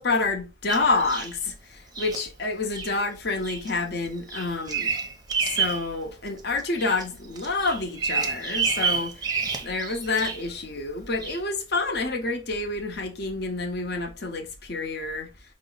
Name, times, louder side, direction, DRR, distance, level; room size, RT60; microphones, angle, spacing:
voice 1, 0.0-5.0 5.4-9.3 9.6-15.3, left 3 dB, 60° left, 0.8 m, -28 dB
Bird vocalization bird call bird song, 0.7-1.4 1.9-2.2 2.7-2.9 3.4-3.7 4.0-5.9 6.3-7.0 7.4-10.5 11.2-11.4, right 5 dB, 20° right, 0.6 m, -29 dB
5.2 x 2.0 x 3.9 m
head